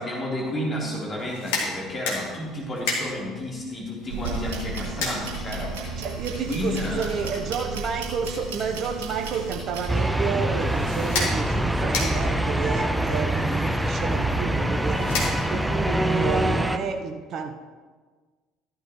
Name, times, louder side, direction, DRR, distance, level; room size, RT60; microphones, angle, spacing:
voice 1, 0.0-6.1 6.5-7.3 15.0-15.2, left 1 dB, 30° left, -4 dB, 3.7 m, -31 dB
sound 1, 1.2-15.8, left 3 dB, 65° left, 2.1 m, -35 dB
sound 2, 4.1-9.9, right 4 dB, 70° right, 2.4 m, -33 dB
voice 2, 6.0-17.6, right 5 dB, 45° right, 7 dB, 0.8 m, -31 dB
sound 3, 9.9-16.8, right 1 dB, 5° right, 0.7 m, -24 dB
14.0 x 11.5 x 3.1 m, 1.4 s
figure-of-eight pair, 55°, 0 cm